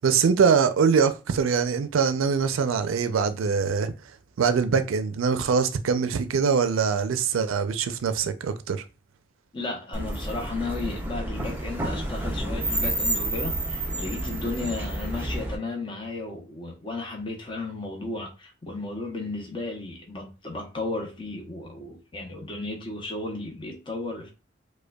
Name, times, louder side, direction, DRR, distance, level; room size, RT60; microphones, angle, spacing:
voice 1, 0.0-3.9 4.4-8.8, right 6 dB, 90° right, 0.4 m, -23 dB
voice 2, 9.5-24.3, left 2 dB, 25° left, 0.7 m, -34 dB
sound 1, 9.9-15.5, right 1 dB, 10° right, 0.4 m, -30 dB
4.9 x 2.2 x 2.2 m
head